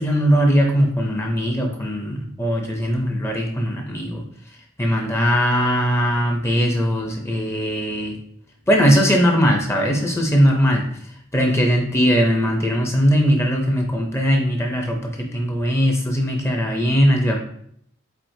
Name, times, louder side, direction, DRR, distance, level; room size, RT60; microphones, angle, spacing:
voice 1, 0.0-4.2 4.8-8.2 8.7-10.8 11.3-15.0 15.3-17.4, equal, 15° left, 2 dB, 0.5 m, -19 dB
4.4 x 4.1 x 2.6 m, 0.67 s
head